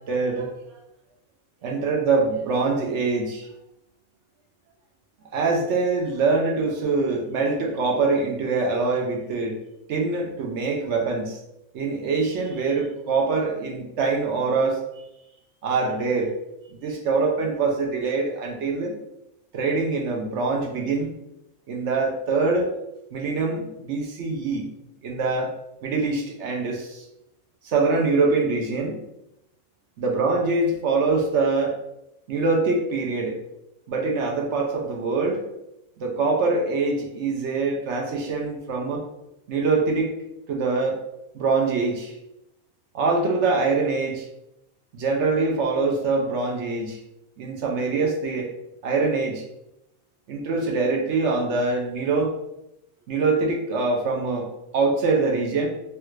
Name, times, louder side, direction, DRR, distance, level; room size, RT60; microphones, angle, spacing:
voice 1, 0.1-0.5 1.6-3.5 5.3-9.6 9.9-11.4 11.7-14.8 15.6-16.3 16.8-18.9 19.5-21.1 21.7-22.7 23.1-24.7 25.0-25.5 25.8-27.0 27.6-29.0 30.0-31.8 32.3-33.4 33.9-35.4 36.0-39.0 39.5-40.1 40.5-41.0 41.3-42.1 42.9-44.3 44.9-47.0 47.4-48.5 48.8-49.4 50.3-52.3 53.1-54.5 54.7-55.7, right 3 dB, 65° right, 1 dB, 0.8 m, -24 dB
3.2 x 2.4 x 3.1 m, 0.85 s
omnidirectional pair, 1.5 m